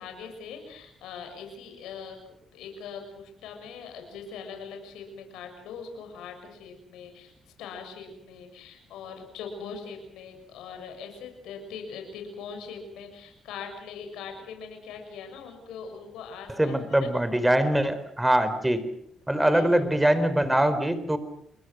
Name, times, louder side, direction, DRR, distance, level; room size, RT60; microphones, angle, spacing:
voice 1, 0.0-2.2 2.5-7.3 7.6-17.1 19.5-19.7, left 6 dB, 90° left, 5 dB, 6.8 m, -41 dB
voice 2, 16.6-18.9 19.3-21.2, right 1 dB, 10° right, 12 dB, 4.3 m, -23 dB
30.0 x 22.0 x 6.4 m, 0.75 s
cardioid pair, 90°, 0 cm